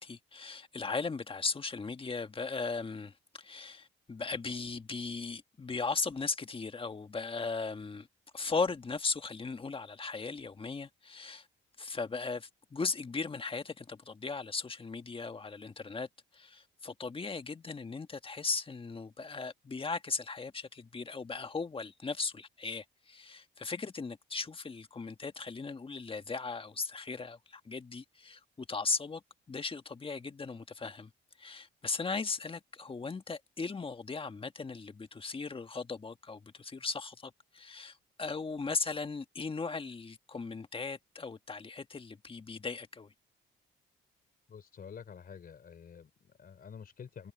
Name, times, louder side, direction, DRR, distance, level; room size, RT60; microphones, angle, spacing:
voice 1, 0.0-8.1 8.3-11.5 11.8-16.1 16.3-29.2 29.5-31.1 31.4-43.1, left 4 dB, 25° left, 1.6 m, -37 dB
voice 2, 44.5-47.3, left 7 dB, 50° left, 3.7 m, -49 dB
cardioid pair, 90°, 20 cm